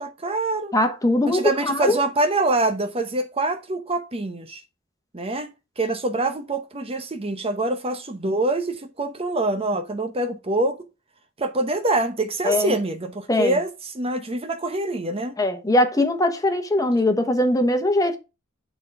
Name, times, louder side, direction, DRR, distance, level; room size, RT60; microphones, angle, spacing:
voice 1, 0.0-0.7 1.3-4.6 5.1-10.8 11.4-15.4, right 2 dB, 30° right, 0.8 m, -25 dB
voice 2, 0.7-2.0 12.4-12.7 13.3-13.6 15.4-18.2, left 1 dB, 15° left, 1.2 m, -21 dB
9.1 x 3.9 x 4.8 m
head